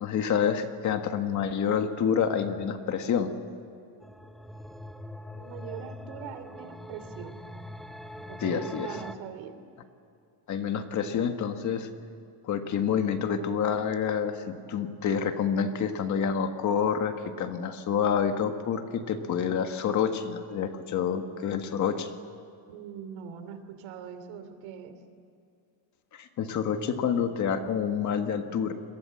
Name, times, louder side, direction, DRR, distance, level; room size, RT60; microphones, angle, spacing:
voice 1, 0.0-3.3 8.4-8.9 10.5-11.9 12.4-22.1 26.1-28.7, left 7 dB, 35° left, 7 dB, 1.6 m, -28 dB
sound 1, 4.0-9.1, left 1 dB, ahead, 0.8 m, -42 dB
voice 2, 5.3-7.4 8.3-9.5 22.7-25.0, right 8 dB, 70° right, 10 dB, 3.0 m, -42 dB
29.5 x 22.5 x 7.7 m, 2.6 s
cardioid pair, 180°, 48 cm